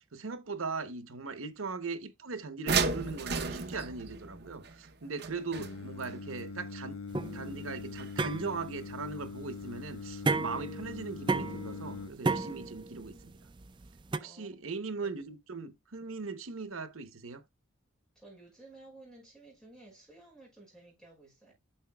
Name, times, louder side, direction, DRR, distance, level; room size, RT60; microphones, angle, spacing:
voice 1, 0.1-7.0 7.3-13.4 14.1-17.4, right 4 dB, 80° right, 0.9 m, -39 dB
sound 1, 2.7-6.1 8.0-8.1 8.4-8.5, right 5 dB, 50° right, 0.8 m, -33 dB
Singing, 5.6-12.1, left 4 dB, 70° left, 0.6 m, -42 dB
sound 2, 7.1-14.2, right 3 dB, 20° right, 0.3 m, -34 dB
voice 2, 14.2-14.5 15.0-15.3 18.2-21.5, right 2 dB, 5° left, 5.4 m, -54 dB
10.0 x 6.6 x 2.3 m
head